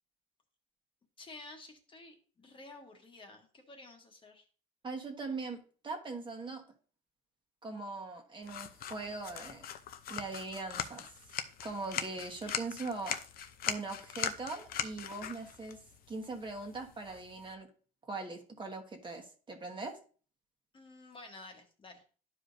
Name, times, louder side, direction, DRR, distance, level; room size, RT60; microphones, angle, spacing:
voice 1, 1.2-4.4 12.4-12.6 20.7-22.0, left 2 dB, 30° left, 3 dB, 1.3 m, -52 dB
voice 2, 4.8-6.6 7.6-9.7 10.1-11.1 11.6-13.2 13.7-15.8 16.1-17.7 18.0-20.0, right 3 dB, 30° right, 3 dB, 1.3 m, -41 dB
sound 1, 8.4-17.5, left 9 dB, 60° left, 0.7 m, -41 dB
11.0 x 4.9 x 2.6 m, 0.39 s
cardioid pair, 110°, 17 cm